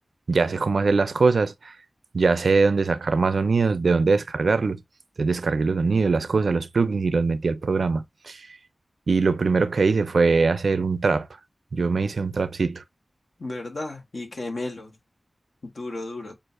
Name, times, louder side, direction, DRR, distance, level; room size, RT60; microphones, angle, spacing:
voice 1, 0.3-1.7 2.1-4.8 5.2-8.5 9.1-11.3 11.7-12.8, right 4 dB, 85° right, 0.4 m, -22 dB
voice 2, 13.4-15.0 15.6-16.4, left 2 dB, 70° left, 1.1 m, -33 dB
6.2 x 2.4 x 2.5 m
wide cardioid pair, 50°, 0 cm